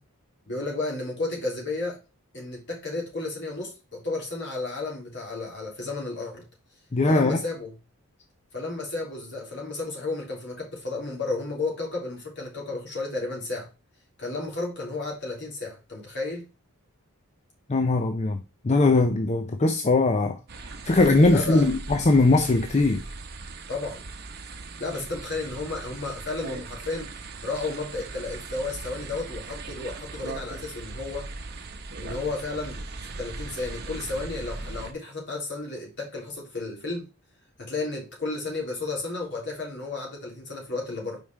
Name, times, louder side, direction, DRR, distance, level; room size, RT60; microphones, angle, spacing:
voice 1, 0.5-2.0 2.3-6.4 7.1-7.7 8.5-13.7 14.2-16.4 21.3-21.7 23.7-24.0 24.8-27.1 27.4-31.3 32.0-37.1 37.6-41.2, left 3 dB, 50° left, 3.2 m, -32 dB
voice 2, 6.9-7.4 17.7-18.4 18.6-20.4 20.9-23.0, left 2 dB, 30° left, 0.5 m, -20 dB
sound 1, 20.5-34.9, right 3 dB, 45° right, 0.9 m, -39 dB
5.3 x 4.9 x 4.4 m
head